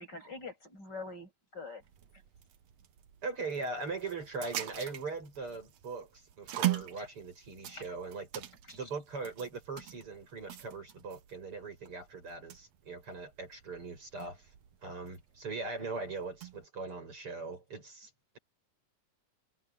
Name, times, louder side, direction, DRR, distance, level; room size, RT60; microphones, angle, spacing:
voice 1, 0.0-1.8 7.0-7.1 8.7-8.9, left 3 dB, 30° left, 8.3 m, -45 dB
sound 1, 1.8-16.7, right 13 dB, 60° right, 2.1 m, -42 dB
voice 2, 3.2-14.5 14.8-18.1, right 4 dB, 40° right, 8.0 m, -40 dB
omnidirectional pair, 3.9 m